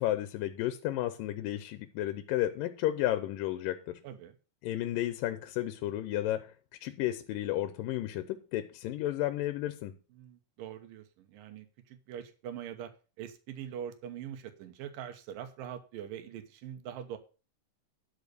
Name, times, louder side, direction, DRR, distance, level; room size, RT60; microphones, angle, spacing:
voice 1, 0.0-4.0 4.6-6.5 6.8-9.9, left 13 dB, 90° left, 2.4 m, -32 dB
voice 2, 4.0-4.4 10.1-12.9 13.2-17.2, right 9 dB, 90° right, 2.7 m, -43 dB
12.0 x 5.3 x 6.6 m
omnidirectional pair, 3.8 m